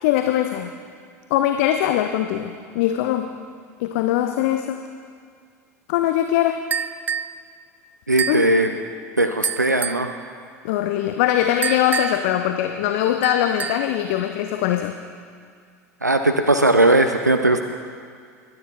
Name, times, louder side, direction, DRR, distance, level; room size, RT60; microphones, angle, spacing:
voice 1, 0.0-0.7 1.3-3.4 3.8-4.8 5.9-6.6 8.3-8.5 10.6-15.0, left 12 dB, 55° left, 7 dB, 0.7 m, -21 dB
sound 1, 6.7-7.4 8.2-8.5 9.4-10.1 11.6-12.3 13.2-13.9, right 7 dB, 20° right, 0.4 m, -27 dB
voice 2, 8.1-8.7 9.2-10.1 16.0-17.6, right 2 dB, 90° right, 6 dB, 0.6 m, -18 dB
21.5 x 9.8 x 4.3 m, 2.1 s
figure-of-eight pair, 75°, 9 cm